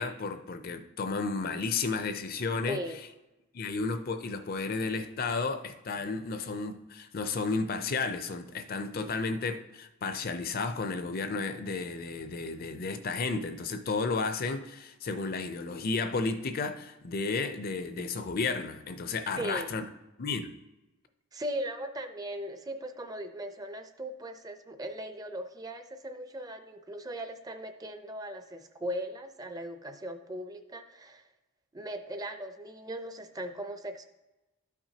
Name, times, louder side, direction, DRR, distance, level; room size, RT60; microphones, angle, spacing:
voice 1, 0.0-2.8 3.5-19.8 20.2-20.6, left 4 dB, 45° left, 0.5 m, -32 dB
voice 2, 19.4-19.8 21.3-31.3 31.7-34.0, right 1 dB, 20° right, 0.5 m, -38 dB
12.5 x 5.9 x 2.8 m
head